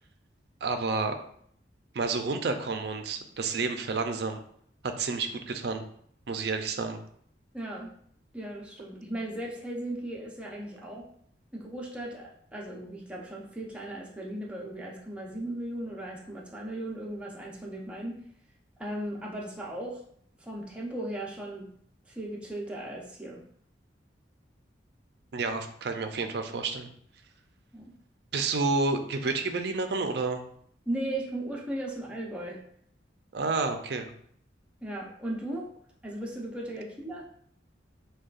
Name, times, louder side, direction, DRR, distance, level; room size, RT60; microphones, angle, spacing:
voice 1, 0.6-1.2 1.9-4.4 4.8-5.8 6.3-7.0 25.3-26.9 28.3-30.4 33.3-34.1, right 3 dB, 60° right, 7 dB, 0.4 m, -30 dB
voice 2, 7.5-7.9 8.3-11.1 11.5-18.2 18.8-20.0 20.4-21.7 22.1-23.4 27.7-28.0 30.9-32.6 34.8-35.7 36.0-37.3, right 1 dB, 5° right, -3 dB, 0.6 m, -37 dB
6.3 x 2.2 x 2.4 m, 0.64 s
head